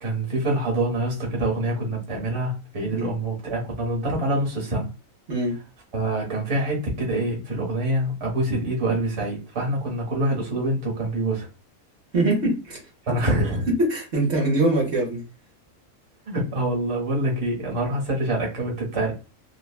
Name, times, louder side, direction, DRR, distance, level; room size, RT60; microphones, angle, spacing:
voice 1, 0.0-4.9 5.9-11.5 13.1-13.7 16.3-19.1, right 1 dB, 25° right, -2 dB, 0.8 m, -25 dB
voice 2, 12.1-12.8 13.2-13.4 13.7-15.2, right 1 dB, 55° right, -1 dB, 1.1 m, -23 dB
3.3 x 2.2 x 2.3 m, 0.32 s
omnidirectional pair, 1.5 m